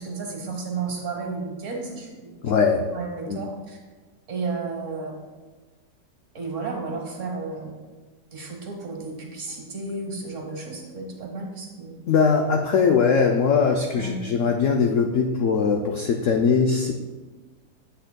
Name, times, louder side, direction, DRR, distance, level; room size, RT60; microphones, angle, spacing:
voice 1, 0.0-2.4 2.9-3.8 4.3-5.2 6.3-7.8 8.3-12.0 14.0-14.2, right 4 dB, 50° right, 0 dB, 1.4 m, -33 dB
voice 2, 2.4-2.8 3.3-3.4 12.1-16.9, left 5 dB, 80° left, 3 dB, 0.7 m, -21 dB
8.5 x 7.8 x 2.2 m, 1.3 s
omnidirectional pair, 1.9 m